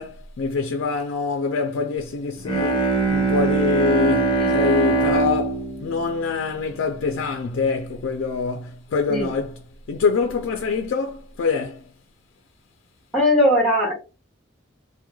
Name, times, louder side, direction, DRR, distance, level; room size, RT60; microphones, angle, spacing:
voice 1, 0.0-9.5 9.9-11.8, left 4 dB, 75° left, 0.3 m, -25 dB
Bowed string instrument, 2.4-7.3, right 3 dB, 25° left, 0.5 m, -22 dB
voice 2, 13.1-13.9, left 1 dB, ahead, 0.8 m, -19 dB
2.9 x 2.1 x 2.2 m
head